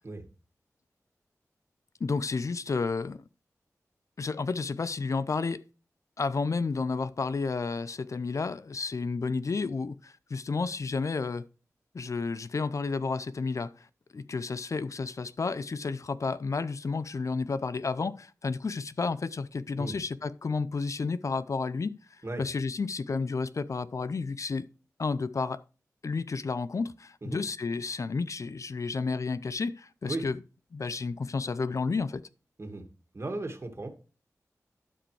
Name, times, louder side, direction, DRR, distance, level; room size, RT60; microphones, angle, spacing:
voice 1, 2.0-3.2 4.2-5.6 6.2-11.4 11.9-13.7 14.1-21.9 22.4-24.7 25.0-25.6 26.0-30.4 30.7-32.2, left 4 dB, 60° left, 0.5 m, -31 dB
voice 2, 33.1-33.9, right 2 dB, 45° right, 2.0 m, -36 dB
12.5 x 5.0 x 3.2 m
cardioid pair, 45°, 6 cm